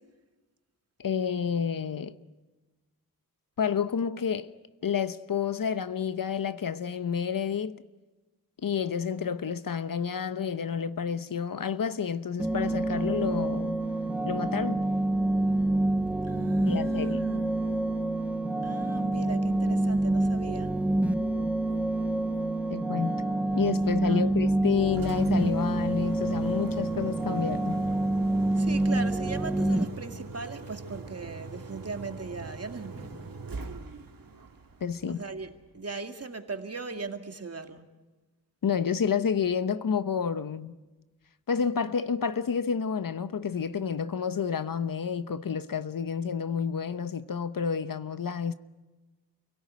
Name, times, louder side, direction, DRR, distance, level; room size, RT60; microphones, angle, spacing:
voice 1, 1.0-2.1 3.6-4.5 4.8-7.8 8.6-13.8 14.2-14.9 16.7-17.3 22.7-23.2 23.5-27.8 34.8-35.2 38.6-40.7 41.5-48.5, left 7 dB, 55° left, 1.0 m, -29 dB
sound 1, 12.4-29.8, right 2 dB, 5° right, 1.3 m, -27 dB
voice 2, 16.3-18.0 18.6-20.8 24.0-24.3 28.6-33.3 35.1-37.8, right 4 dB, 40° right, 2.2 m, -39 dB
Engine, 24.8-35.8, right 3 dB, 60° right, 2.8 m, -43 dB
28.5 x 17.5 x 9.4 m
wide cardioid pair, 100°, 39 cm